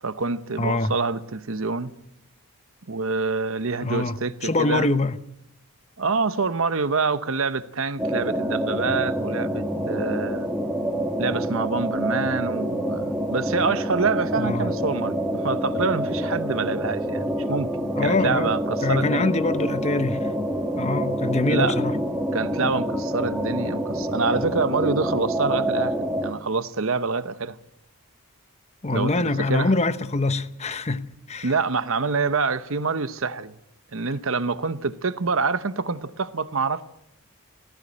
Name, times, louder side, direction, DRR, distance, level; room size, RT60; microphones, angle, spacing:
voice 1, 0.0-1.9 2.9-4.9 6.0-10.5 11.2-17.7 18.0-19.3 21.5-21.8 22.3-25.9 26.2-27.6 28.9-29.7 31.4-33.6 33.9-36.8, right 4 dB, 60° right, 0.9 m, -26 dB
voice 2, 0.6-0.9 3.8-5.2 14.4-14.7 17.9-18.5 18.8-20.3 20.8-22.0 28.8-31.5, left 2 dB, 30° left, 0.8 m, -24 dB
sound 1, 8.0-26.3, equal, 5° right, 2.1 m, -27 dB
18.5 x 14.5 x 9.7 m
head